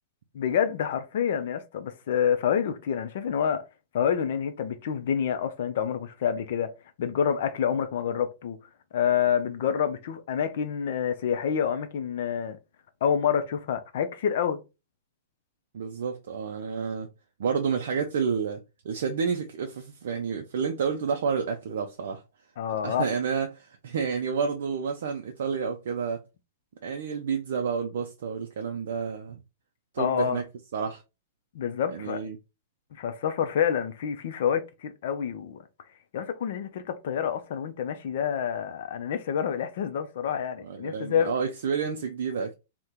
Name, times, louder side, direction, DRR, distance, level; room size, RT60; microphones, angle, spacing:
voice 1, 0.3-3.6 3.9-6.7 7.0-8.6 8.9-12.6 13.0-14.6 22.6-23.0 30.0-30.4 31.5-32.2 33.0-35.6 36.1-41.3, left 8 dB, 60° left, 0.5 m, -27 dB
voice 2, 15.7-17.1 17.4-22.2 22.8-26.2 26.8-29.4 29.9-30.4 30.7-31.0 31.9-32.4 40.6-42.5, right 6 dB, 65° right, 0.4 m, -30 dB
2.7 x 2.1 x 3.5 m
figure-of-eight pair, 105°, 0 cm